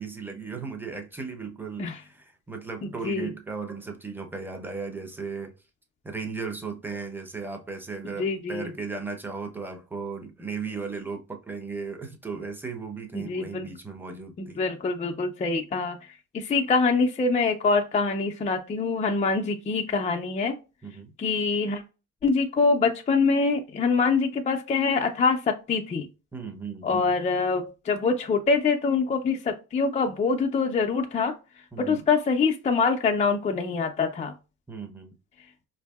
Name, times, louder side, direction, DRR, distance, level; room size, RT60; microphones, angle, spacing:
voice 1, 0.0-5.5 6.0-14.6 20.8-21.1 26.3-27.1 31.7-32.0 34.7-35.1, right 4 dB, 5° right, 0.7 m, -36 dB
voice 2, 2.8-3.3 8.2-8.7 13.1-13.7 14.4-16.1 16.3-20.5 21.2-21.8 22.2-26.1 26.8-31.3 31.8-34.3, left 4 dB, 20° left, 0.4 m, -25 dB
4.5 x 2.6 x 2.3 m
supercardioid pair, 85°, 34 cm